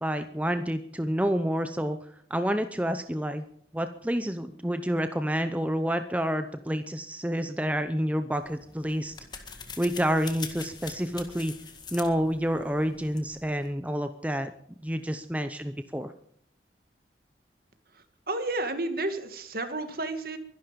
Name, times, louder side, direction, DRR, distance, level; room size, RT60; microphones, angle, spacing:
voice 1, 0.0-2.0 2.3-3.4 3.7-9.4 9.8-11.5 11.9-14.5 14.8-16.1, equal, 10° right, 9 dB, 0.7 m, -29 dB
sound 1, 8.4-13.7, left 5 dB, 25° left, 1.9 m, -44 dB
voice 2, 17.9-20.4, right 2 dB, 55° right, 8 dB, 2.2 m, -32 dB
23.0 x 12.0 x 5.3 m, 0.67 s
head